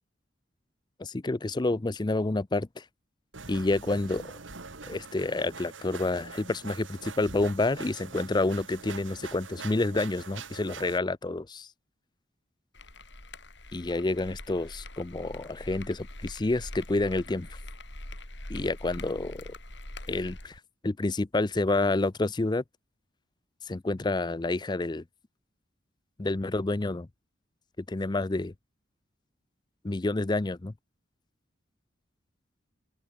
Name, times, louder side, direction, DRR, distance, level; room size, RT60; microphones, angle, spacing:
voice 1, 1.0-2.8 3.5-4.2 4.9-11.7 13.7-17.5 18.5-19.4 20.1-22.6 23.7-25.0 26.2-27.1 27.9-28.5 29.8-30.7, left 2 dB, 25° left, 0.5 m, -29 dB
sound 1, 3.3-11.0, right 4 dB, 80° right, 2.3 m, -44 dB
sound 2, 12.7-20.6, left 1 dB, 65° left, 7.1 m, -43 dB
open air
head